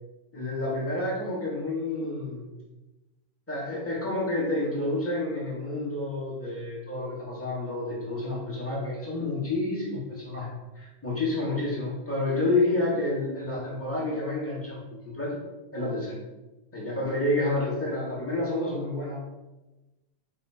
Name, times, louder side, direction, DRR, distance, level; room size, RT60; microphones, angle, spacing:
voice 1, 0.3-2.5 3.5-15.4 15.7-16.2 16.7-19.3, left 2 dB, 5° left, -6 dB, 1.9 m, -29 dB
7.5 x 4.3 x 5.3 m, 1.1 s
omnidirectional pair, 3.8 m